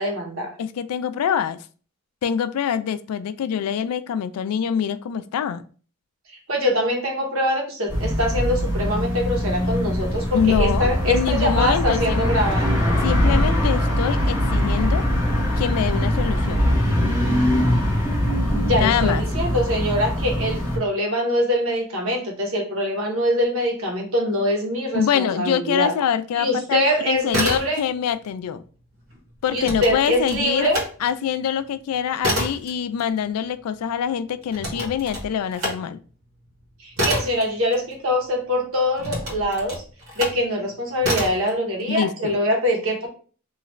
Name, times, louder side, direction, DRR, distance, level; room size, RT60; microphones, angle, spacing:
voice 1, 0.0-0.5 6.5-12.7 18.6-25.9 26.3-27.8 29.5-30.8 36.8-39.8 40.2-43.1, equal, 60° right, 1 dB, 1.0 m, -23 dB
voice 2, 0.6-1.6 2.2-5.6 10.3-12.3 13.0-15.0 15.6-16.7 18.8-19.2 24.9-28.6 29.4-30.7 31.0-36.0 41.9-42.4, left 8 dB, 85° left, 14 dB, 0.3 m, -24 dB
sound 1, 7.9-20.8, equal, 10° right, 0.8 m, -22 dB
sound 2, 27.1-28.1 28.4-30.9 31.3-38.3 39.0-40.4 41.0-41.5, equal, 80° right, 1.4 m, -28 dB
3.1 x 2.4 x 3.0 m, 0.39 s
head